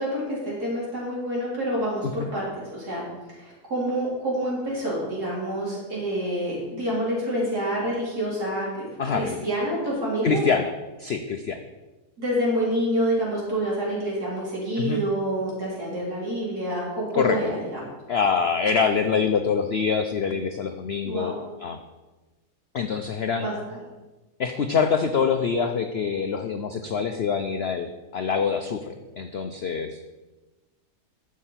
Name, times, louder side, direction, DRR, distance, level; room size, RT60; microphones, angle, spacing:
voice 1, 0.0-3.1 3.4-10.4 12.2-17.8 21.0-21.3 23.4-23.8, right 1 dB, 65° right, -6 dB, 4.5 m, -27 dB
voice 2, 9.0-9.4 10.2-10.7 11.0-11.6 14.8-15.0 17.1-17.4 18.1-21.3 21.6-21.8 22.7-23.5 24.4-30.0, left 6 dB, 65° left, 7 dB, 0.6 m, -25 dB
11.0 x 7.4 x 5.7 m, 1.2 s
omnidirectional pair, 1.8 m